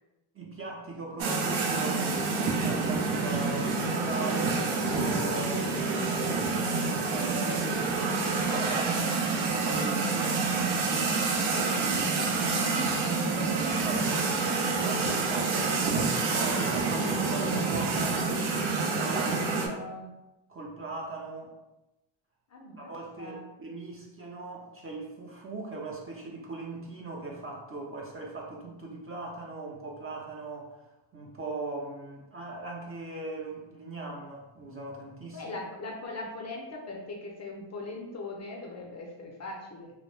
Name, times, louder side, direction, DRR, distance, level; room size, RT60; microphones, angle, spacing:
voice 1, 0.3-5.9 7.1-7.9 8.3-10.4 12.7-18.3 18.7-19.8 20.5-21.6 22.8-30.8 31.1-35.5, right 3 dB, 30° right, -2 dB, 0.4 m, -39 dB
sound 1, 1.2-19.7, right 4 dB, 75° right, 0.6 m, -28 dB
voice 2, 11.5-12.8 15.3-15.6 19.1-20.1 22.5-22.9 23.2-23.5 35.3-39.9, left 2 dB, 35° left, 0 dB, 0.4 m, -40 dB
2.3 x 2.0 x 3.0 m, 0.98 s
cardioid pair, 95°, 49 cm